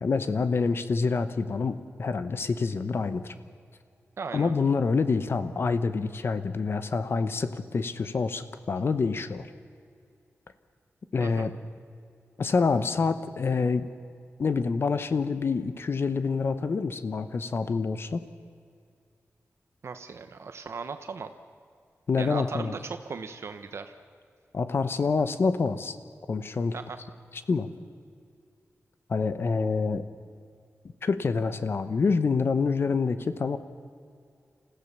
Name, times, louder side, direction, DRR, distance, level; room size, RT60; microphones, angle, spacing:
voice 1, 0.0-3.3 4.3-9.5 11.1-11.5 12.4-13.9 14.4-18.2 22.1-22.7 24.5-26.0 26.3-26.7 27.5-27.7 29.1-30.1 31.0-33.6, left 4 dB, 55° left, 11 dB, 1.0 m, -27 dB
voice 2, 4.2-4.5 11.2-11.5 19.8-21.3 22.2-23.9 26.7-27.0, right 5 dB, 65° right, 8 dB, 0.9 m, -37 dB
28.5 x 15.0 x 6.8 m, 2.3 s
wide cardioid pair, 170°, 5 cm